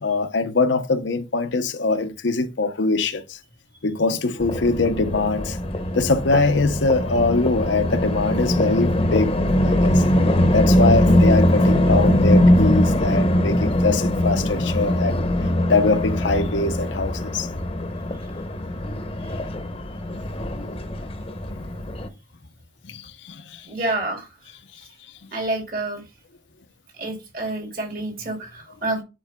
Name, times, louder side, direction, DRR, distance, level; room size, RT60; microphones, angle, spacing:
voice 1, 0.0-3.2 3.8-5.6 5.9-9.4 9.6-10.0 10.3-15.2 15.7-17.5 20.6-20.7 21.5-21.7 22.8-23.0 23.3-23.6, left 3 dB, 70° left, 0.7 m, -22 dB
sound 1, 4.4-22.1, left 1 dB, 30° left, 0.9 m, -21 dB
voice 2, 23.7-24.3 25.3-26.0 27.0-29.0, right 2 dB, 45° right, 2.6 m, -28 dB
10.0 x 4.5 x 2.2 m
head